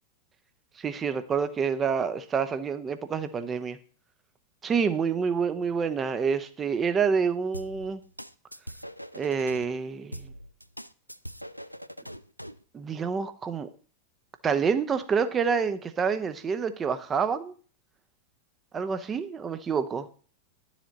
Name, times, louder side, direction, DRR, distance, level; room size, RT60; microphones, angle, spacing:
voice 1, 0.8-3.8 4.6-8.0 9.1-10.3 12.7-13.7 14.4-17.6 18.7-20.1, right 6 dB, 20° right, 11 dB, 0.9 m, -27 dB
sound 1, 7.5-9.6 10.1-12.6, equal, 90° left, 0.4 m, -42 dB
11.5 x 7.3 x 4.0 m, 0.41 s
figure-of-eight pair, 90°, 0 cm